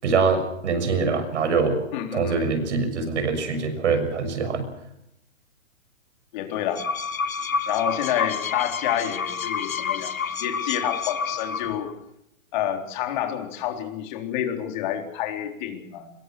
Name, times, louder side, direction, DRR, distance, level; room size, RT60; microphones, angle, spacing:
voice 1, 0.0-1.8 2.1-4.6, right 4 dB, 55° right, 9 dB, 6.7 m, -24 dB
voice 2, 1.9-2.4 6.3-6.9 7.7-11.9 12.5-16.1, left 10 dB, 35° left, 4 dB, 3.9 m, -29 dB
sound 1, 6.5-11.9, left 6 dB, 80° left, 2.2 m, -29 dB
25.0 x 22.0 x 6.3 m, 0.79 s
hypercardioid pair, 150°, 41 cm